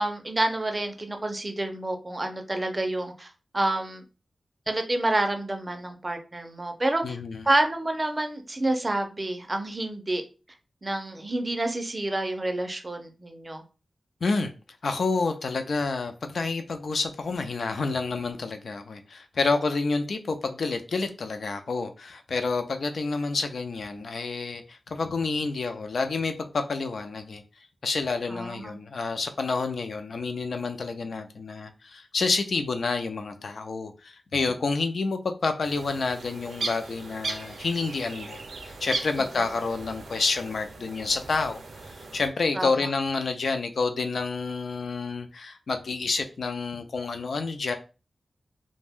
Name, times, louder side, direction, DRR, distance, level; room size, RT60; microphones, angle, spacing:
voice 1, 0.0-4.0 4.7-7.2 7.4-10.2 10.8-13.6 28.3-28.7 42.5-42.7, right 2 dB, 25° right, 0.4 m, -28 dB
voice 2, 7.0-7.4 14.2-14.5 14.8-27.4 27.8-47.7, left 4 dB, 65° left, 0.3 m, -29 dB
sound 1, 35.6-42.3, right 3 dB, 80° right, 0.5 m, -38 dB
2.5 x 2.1 x 3.4 m
wide cardioid pair, 140°, 0 cm